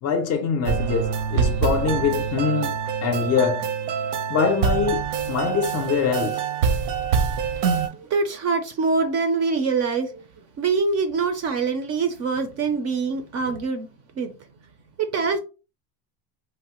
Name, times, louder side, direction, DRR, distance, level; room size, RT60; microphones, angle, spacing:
voice 1, 0.0-2.7 3.0-3.7 4.3-6.4, left 5 dB, 35° left, 0.5 m, -23 dB
sound 1, 0.6-7.9, right 6 dB, 75° right, 0.7 m, -25 dB
voice 2, 7.7-10.2 10.6-13.9 14.2-14.3 15.0-15.4, right 4 dB, 40° right, 0.4 m, -24 dB
3.1 x 2.1 x 2.9 m
cardioid pair, 145°, 43 cm